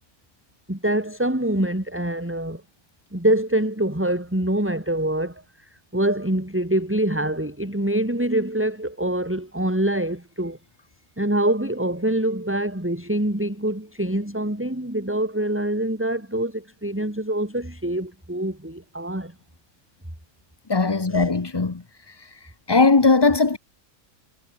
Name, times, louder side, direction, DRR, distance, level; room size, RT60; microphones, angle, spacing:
voice 1, 0.7-2.6 3.1-10.6 11.2-19.3 21.1-21.3, right 1 dB, 10° right, 3.3 m, -25 dB
voice 2, 20.7-21.8 22.2-22.3 22.7-23.6, left 3 dB, 25° left, 0.7 m, -19 dB
omnidirectional pair, 1.6 m